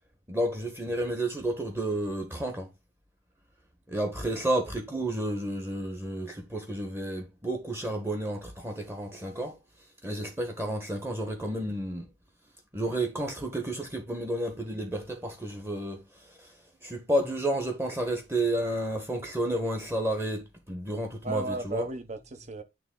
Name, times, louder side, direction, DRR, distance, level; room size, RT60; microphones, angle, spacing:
voice 1, 0.3-2.7 3.9-9.6 10.0-12.1 12.7-16.5 16.8-21.8, right 1 dB, 15° right, 1.2 m, -31 dB
voice 2, 4.0-4.3 21.2-22.6, right 3 dB, 40° right, 0.9 m, -35 dB
9.0 x 3.3 x 3.8 m
head